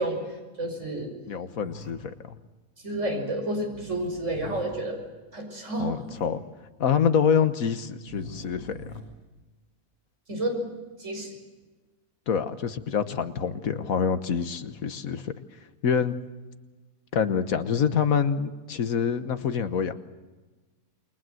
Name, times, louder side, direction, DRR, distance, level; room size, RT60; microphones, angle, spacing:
voice 1, 0.0-1.1 2.8-5.0 5.3-6.0 10.3-10.6 11.0-11.3, right 1 dB, 55° right, 2 dB, 6.0 m, -30 dB
voice 2, 1.3-2.3 5.8-6.4 6.8-9.0 12.3-15.3 15.8-16.1 17.1-19.9, left 7 dB, 70° left, 10 dB, 1.6 m, -26 dB
sound 1, 1.5-1.9 3.7-4.6 5.9-6.3 8.1-9.0, left 1 dB, 75° right, 6.7 m, -43 dB
28.5 x 22.5 x 7.8 m, 1.2 s
omnidirectional pair, 1.5 m